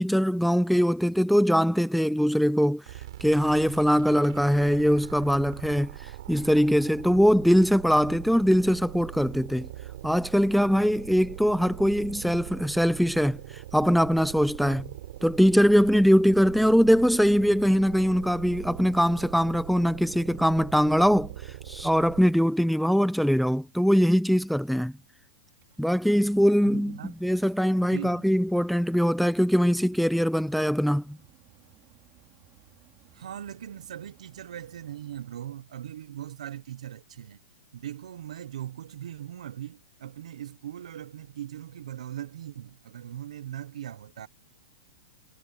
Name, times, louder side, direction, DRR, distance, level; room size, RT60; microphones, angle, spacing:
voice 1, 0.0-2.8 3.2-5.9 6.3-9.7 10.0-13.4 13.7-14.9 15.2-21.3 21.7-24.9 25.8-31.2, equal, ahead, 0.5 m, -22 dB
sound 1, 2.9-22.5, right 14 dB, 55° right, 5.7 m, -42 dB
Mechanical fan, 25.5-36.0, right 16 dB, 25° right, 5.3 m, -60 dB
voice 2, 26.7-27.1 27.9-28.2 33.2-37.4 37.7-44.3, right 11 dB, 75° right, 1.1 m, -40 dB
hypercardioid pair, 165°, 4 cm